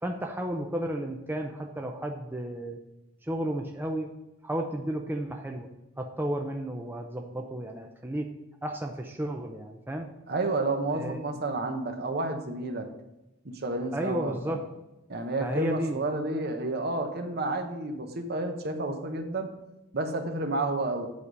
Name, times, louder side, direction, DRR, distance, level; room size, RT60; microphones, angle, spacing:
voice 1, 0.0-2.8 3.3-4.1 4.4-5.7 6.0-8.3 8.6-10.1 10.9-11.4 13.9-14.6 15.4-16.0, right 1 dB, 10° right, 2 dB, 0.5 m, -33 dB
voice 2, 10.3-12.9 13.4-14.6 15.1-19.5 19.9-21.1, right 2 dB, 50° right, 6 dB, 0.9 m, -30 dB
8.5 x 4.8 x 5.3 m, 0.99 s
head